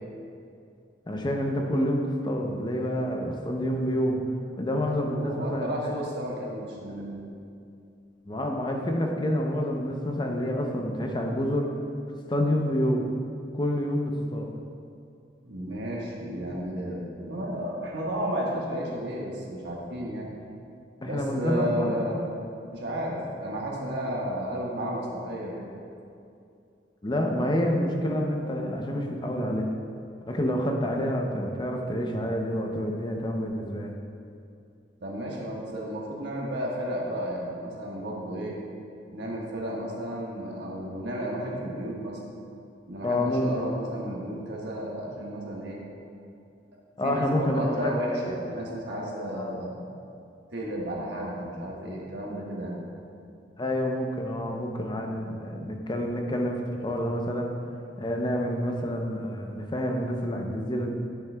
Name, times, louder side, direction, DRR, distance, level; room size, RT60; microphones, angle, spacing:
voice 1, 1.1-4.2 4.6-5.7 8.3-11.7 12.3-13.1 13.5-14.5 21.0-22.0 27.0-29.7 30.3-34.0 43.0-43.5 47.0-48.3 49.3-49.5 53.6-57.5 58.0-60.9, equal, 25° left, 2 dB, 0.6 m, -28 dB
voice 2, 4.8-7.2 15.4-20.3 21.1-22.1 22.7-25.7 35.0-38.5 39.1-42.2 42.9-45.8 47.0-49.9 50.5-52.8, equal, 90° right, -3 dB, 1.4 m, -33 dB
10.0 x 7.0 x 2.2 m, 2.5 s
head